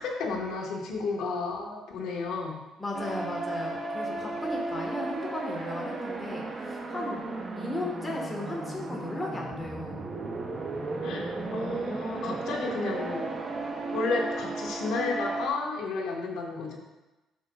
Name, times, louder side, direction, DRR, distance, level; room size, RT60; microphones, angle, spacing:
voice 1, 0.0-2.6 11.0-13.4 13.9-16.8, left 4 dB, 80° left, -1 dB, 1.4 m, -32 dB
voice 2, 2.8-7.2 7.5-10.1, left 1 dB, 15° left, -1 dB, 1.4 m, -35 dB
sound 1, 2.9-15.5, right 3 dB, 25° right, 0.7 m, -34 dB
12.5 x 5.5 x 2.4 m, 1.1 s
cardioid pair, 170°, 0 cm